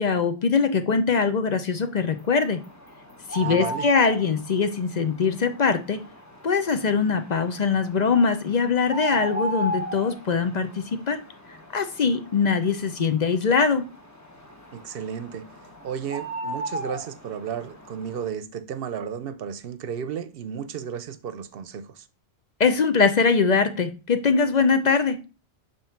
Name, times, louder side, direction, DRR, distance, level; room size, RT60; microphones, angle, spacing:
voice 1, 0.0-2.6 3.3-6.0 6.4-11.2 11.7-13.8 22.6-25.2, left 5 dB, 50° left, 0.6 m, -22 dB
sound 1, 2.0-18.3, equal, 15° left, 0.9 m, -36 dB
voice 2, 3.4-3.9 14.7-15.5 15.8-22.1, right 8 dB, 65° right, 0.8 m, -33 dB
7.4 x 3.0 x 5.8 m
omnidirectional pair, 1.1 m